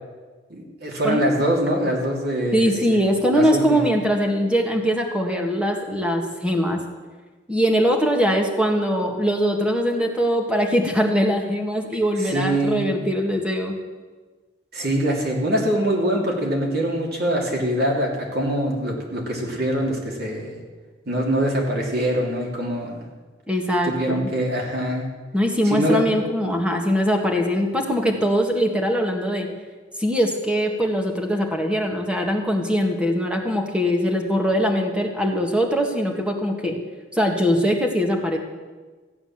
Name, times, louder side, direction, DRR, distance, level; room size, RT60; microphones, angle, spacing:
voice 1, 0.5-3.0 3.3-3.8 12.2-12.8 14.7-20.6 21.1-23.0 23.8-25.1 25.6-26.0, right 1 dB, 60° right, -1 dB, 2.9 m, -23 dB
voice 2, 2.5-6.8 7.5-13.8 23.5-24.3 25.3-29.5 30.0-36.8 37.1-38.4, equal, 5° right, 2 dB, 1.7 m, -22 dB
15.0 x 8.7 x 7.3 m, 1.4 s
head